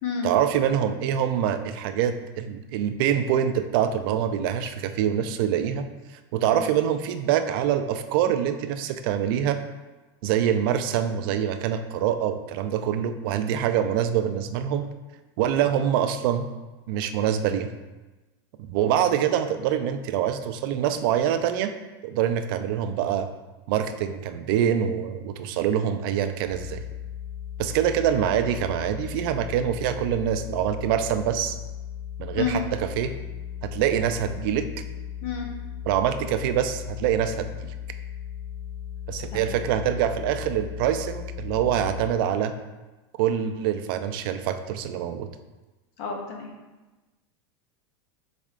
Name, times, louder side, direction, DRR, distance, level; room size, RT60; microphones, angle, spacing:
voice 1, 0.2-5.9 6.3-9.6 10.2-14.9 15.4-16.5 16.9-17.7 18.6-21.7 22.0-23.3 23.7-26.8 27.6-31.6 32.2-33.1 33.6-34.7 35.9-37.7 39.1-42.5 43.2-45.3, right 9 dB, 55° right, 9 dB, 0.4 m, -25 dB
sound 1, 26.5-42.1, left 9 dB, 20° right, 1.0 m, -37 dB
voice 2, 46.0-46.5, left 6 dB, 50° left, 1 dB, 0.8 m, -29 dB
4.9 x 4.1 x 2.4 m, 1.1 s
supercardioid pair, 155°, 14 cm